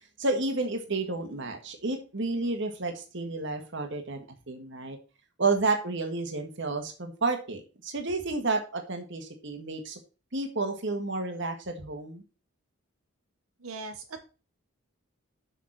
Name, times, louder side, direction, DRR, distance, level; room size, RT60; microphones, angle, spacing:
voice 1, 0.2-5.0 5.4-10.0 10.3-12.2, right 3 dB, 55° right, 5 dB, 1.7 m, -31 dB
voice 2, 13.6-14.2, right 3 dB, 90° right, 5 dB, 1.2 m, -39 dB
6.5 x 5.9 x 5.9 m, 0.33 s
head